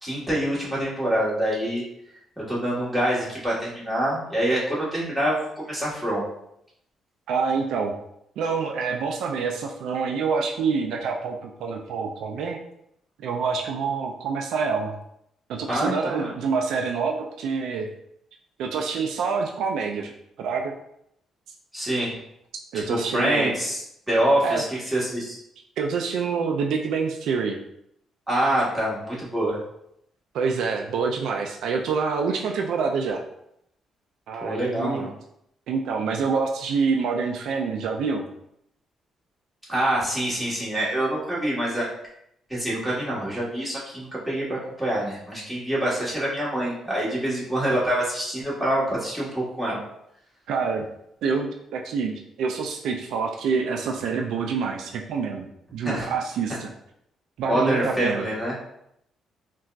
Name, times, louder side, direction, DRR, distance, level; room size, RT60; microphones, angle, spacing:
voice 1, 0.0-1.8 2.5-6.2 15.7-16.3 21.7-22.2 22.7-23.8 24.1-25.4 28.3-29.6 34.4-35.1 39.7-41.9 42.5-49.8 55.8-56.1 57.4-58.6, right 1 dB, 10° right, -7 dB, 1.4 m, -25 dB
voice 2, 7.3-7.9 8.4-12.6 13.2-14.9 15.5-17.9 18.6-20.1 20.4-20.7 22.7-23.5 24.4-24.6 25.8-27.6 30.3-33.2 34.3-35.1 35.7-38.2 50.5-50.9 51.2-56.7 57.4-58.3, right 5 dB, 80° right, 3 dB, 0.3 m, -26 dB
3.8 x 2.3 x 2.4 m, 0.76 s
cardioid pair, 90°, 0 cm